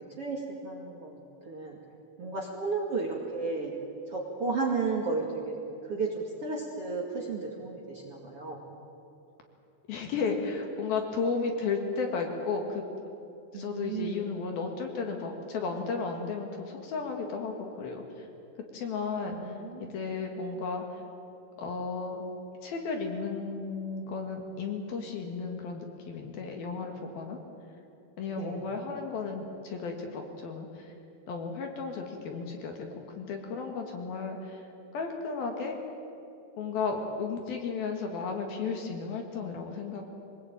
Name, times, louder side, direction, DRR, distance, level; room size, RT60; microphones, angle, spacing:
voice 1, 0.2-1.8 2.2-3.8 4.1-5.6 5.9-8.6 13.5-14.3 19.3-20.0 28.4-28.6, right 4 dB, 40° right, -2 dB, 2.4 m, -33 dB
voice 2, 9.9-12.8 13.5-18.3 18.7-19.4 19.8-21.0 21.6-22.2 22.6-27.4 28.2-30.9 31.3-34.6 34.9-35.8 36.6-40.0, left 4 dB, 60° left, 3 dB, 3.4 m, -34 dB
24.5 x 19.5 x 8.9 m, 2.8 s
omnidirectional pair, 5.2 m